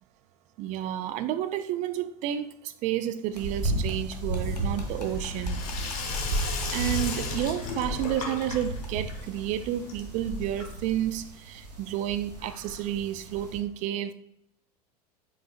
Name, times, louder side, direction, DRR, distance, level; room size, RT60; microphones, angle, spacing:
voice 1, 0.6-5.6 6.7-14.1, right 11 dB, 35° right, 0.4 m, -31 dB
sound 1, 3.3-7.8 8.0-8.1 8.4-8.5 8.8-8.9, left 2 dB, 90° left, 0.8 m, -46 dB
sound 2, 3.3-13.6, right 1 dB, 80° right, 1.0 m, -34 dB
Sink (filling or washing), 4.3-11.0, left 4 dB, 60° left, 1.2 m, -37 dB
4.8 x 3.9 x 2.3 m
figure-of-eight pair, 80°, 20 cm